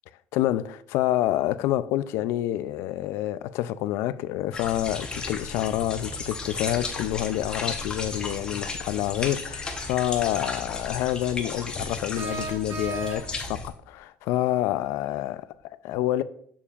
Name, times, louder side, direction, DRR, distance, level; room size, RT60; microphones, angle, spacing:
voice 1, 0.3-16.2, left 13 dB, 80° left, 0.3 m, -28 dB
sound 1, 4.5-13.7, left 3 dB, 20° left, 0.8 m, -34 dB
sound 2, 12.1-13.6, right 3 dB, 70° right, 2.4 m, -35 dB
7.0 x 7.0 x 2.4 m
cardioid pair, 170°, 4 cm